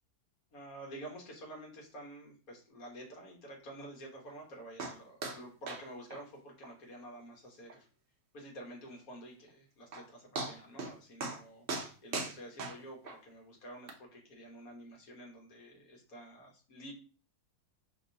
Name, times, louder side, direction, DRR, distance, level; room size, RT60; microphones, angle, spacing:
voice 1, 0.5-7.9 8.3-16.9, right 1 dB, 65° left, 0 dB, 1.6 m, -49 dB
sound 1, 4.8-5.0 5.2-5.4 5.7-5.8 6.1-6.2 6.6-6.7 7.1-7.2 7.7-7.8 9.5-9.6 9.9-10.1 10.4-10.9 11.2-11.4 11.7-13.2 13.9-14.0, right 3 dB, 55° right, 0.7 m, -38 dB
5.1 x 3.0 x 2.7 m, 0.39 s
omnidirectional pair, 1.7 m